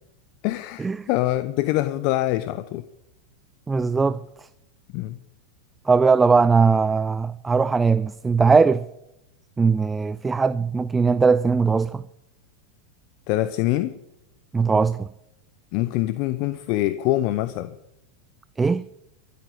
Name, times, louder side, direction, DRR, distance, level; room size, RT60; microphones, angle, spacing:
voice 1, 0.4-2.9 4.9-5.2 13.3-14.0 15.7-17.8, left 15 dB, 50° left, 0.7 m, -24 dB
voice 2, 3.7-4.2 5.9-8.9 9.6-12.0 14.5-15.1 18.6-18.8, right 5 dB, 15° right, 0.4 m, -20 dB
13.5 x 8.5 x 9.1 m
hypercardioid pair, 95°, 0 cm